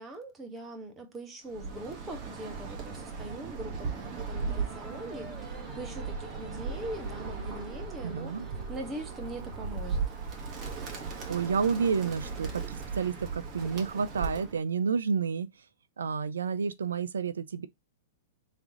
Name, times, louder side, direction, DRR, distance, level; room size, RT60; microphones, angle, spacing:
voice 1, 0.0-10.0, right 1 dB, 20° right, 1.4 m, -42 dB
Bird, 1.5-14.6, right 5 dB, 35° right, 1.6 m, -37 dB
Singing, 4.5-9.9, left 2 dB, ahead, 1.6 m, -51 dB
voice 2, 8.0-8.4 11.3-15.5 16.0-17.7, right 6 dB, 85° right, 0.4 m, -30 dB
3.5 x 3.3 x 3.7 m
hypercardioid pair, 115°, 0 cm